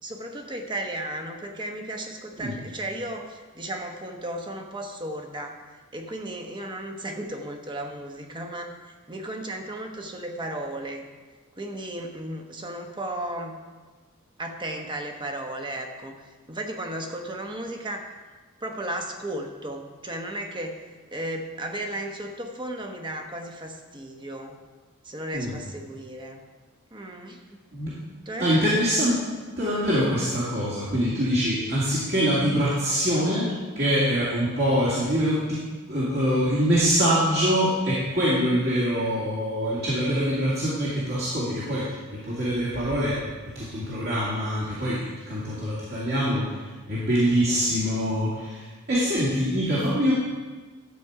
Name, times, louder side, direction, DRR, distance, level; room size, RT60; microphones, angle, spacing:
voice 1, 0.0-11.0 11.6-13.6 14.4-18.1 18.6-20.8 21.1-24.6 25.0-26.4 26.9-27.4 28.3-28.5 45.4-45.6, right 1 dB, 20° right, 3 dB, 1.0 m, -35 dB
voice 2, 28.4-29.2 29.6-33.5 33.8-35.6 35.9-43.2 43.5-50.1, equal, 50° right, -8 dB, 2.3 m, -24 dB
11.5 x 7.8 x 4.8 m, 1.4 s
head